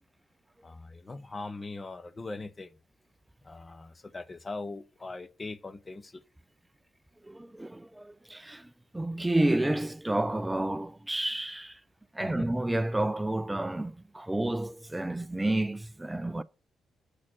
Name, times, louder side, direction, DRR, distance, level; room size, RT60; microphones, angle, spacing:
voice 1, 0.6-2.7 3.4-6.2 12.2-12.6, left 3 dB, 25° left, 0.8 m, -41 dB
voice 2, 7.2-11.8 12.1-16.4, right 1 dB, 10° right, 0.4 m, -30 dB
8.3 x 4.2 x 5.7 m
figure-of-eight pair, 40°, 0 cm